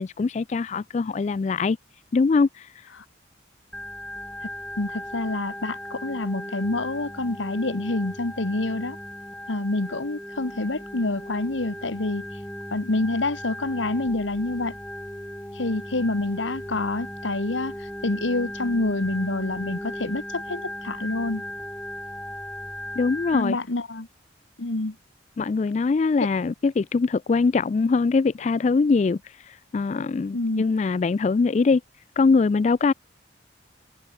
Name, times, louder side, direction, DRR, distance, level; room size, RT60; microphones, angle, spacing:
voice 1, 0.0-1.8 2.1-2.7 23.0-23.6 25.4-31.8 32.2-32.9, left 4 dB, 35° left, 0.3 m, -22 dB
Organ, 3.7-23.4, left 1 dB, 5° left, 1.1 m, -37 dB
voice 2, 4.8-9.0 9.5-12.4 12.7-14.8 15.5-21.4 23.3-24.1 24.6-25.0 26.2-26.3 30.3-30.6, left 2 dB, 90° left, 1.5 m, -27 dB
head